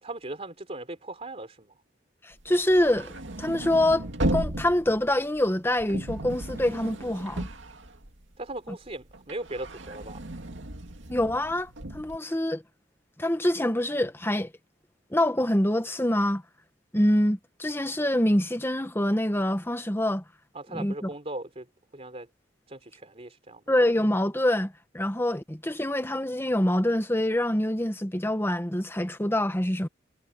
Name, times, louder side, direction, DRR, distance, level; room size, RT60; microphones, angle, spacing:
voice 1, 0.0-1.7 8.4-10.2 20.5-21.7 21.9-22.3 22.7-23.6, right 2 dB, 35° right, 3.5 m, -38 dB
voice 2, 2.2-3.1 3.4-7.5 11.1-12.6 13.2-14.5 15.1-16.4 16.9-20.2 20.7-21.1 23.7-29.9, left 1 dB, 15° left, 1.4 m, -25 dB
sound 1, 2.4-8.5 8.9-12.2, right 1 dB, 75° right, 2.4 m, -35 dB
head